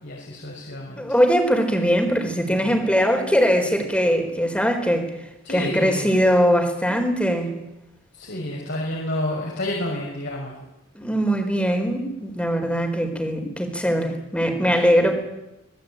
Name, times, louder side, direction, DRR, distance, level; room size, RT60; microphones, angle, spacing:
voice 1, 0.0-1.1 5.4-6.2 8.1-10.6, left 1 dB, 60° left, -3 dB, 5.9 m, -29 dB
voice 2, 1.0-5.1 5.5-7.5 10.9-15.1, equal, 5° left, 5 dB, 4.5 m, -21 dB
26.5 x 19.5 x 9.1 m, 0.94 s
head